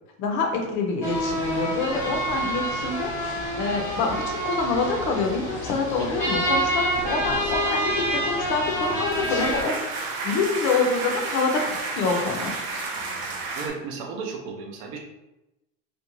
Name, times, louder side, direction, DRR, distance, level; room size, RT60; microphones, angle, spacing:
voice 1, 0.2-3.1 3.6-9.8 10.2-12.5, left 4 dB, 40° left, 2 dB, 0.5 m, -26 dB
sound 1, 1.0-9.6, right 1 dB, 5° left, 0.8 m, -27 dB
voice 2, 7.2-7.5 13.5-15.0, right 5 dB, 45° right, 2 dB, 0.5 m, -34 dB
sound 2, 8.7-13.7, right 3 dB, 85° right, 0.7 m, -31 dB
2.5 x 2.1 x 2.9 m, 0.96 s
supercardioid pair, 160°, 31 cm